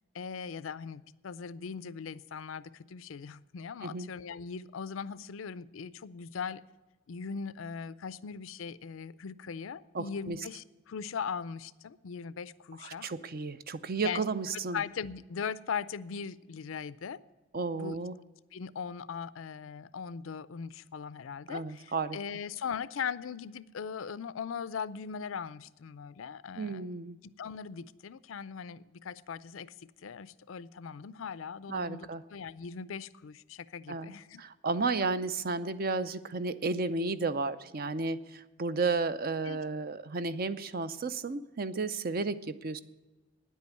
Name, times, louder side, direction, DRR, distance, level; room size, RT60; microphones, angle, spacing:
voice 1, 0.1-6.6 7.1-13.1 14.0-14.2 14.7-17.2 17.7-18.0 18.5-26.9 27.4-34.4 39.5-39.6, left 6 dB, 85° left, 17 dB, 0.5 m, -39 dB
voice 2, 9.9-10.4 12.8-14.8 17.5-18.2 21.5-22.2 26.6-27.2 31.7-32.2 33.9-42.8, right 3 dB, 50° right, 13 dB, 0.6 m, -33 dB
9.9 x 8.4 x 9.4 m, 1.2 s
head